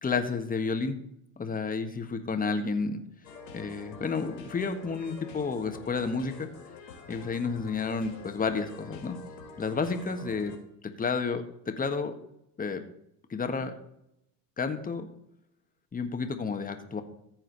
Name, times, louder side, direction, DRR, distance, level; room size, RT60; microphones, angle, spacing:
voice 1, 0.0-1.0 1.4-3.0 3.5-6.5 7.1-9.2 9.6-10.5 10.8-12.1 12.6-12.8 13.3-13.7 14.6-15.1 15.9-17.0, left 4 dB, 15° left, 7 dB, 1.5 m, -31 dB
sound 1, 3.2-10.6, left 4 dB, 85° left, 3.0 m, -47 dB
15.0 x 7.8 x 4.0 m, 0.77 s
hypercardioid pair, 80°, 49 cm